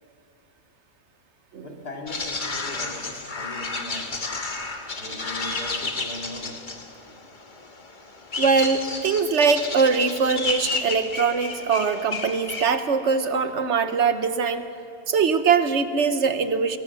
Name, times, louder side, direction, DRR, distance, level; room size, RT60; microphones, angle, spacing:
voice 1, 1.6-4.1 4.9-6.6, left 2 dB, 75° left, 1 dB, 2.9 m, -39 dB
sound 1, 2.1-12.8, left 3 dB, 30° left, 1.5 m, -32 dB
voice 2, 8.4-14.6 15.1-16.8, right 5 dB, 50° right, 10 dB, 1.2 m, -22 dB
21.5 x 20.5 x 7.0 m, 2.6 s
omnidirectional pair, 1.7 m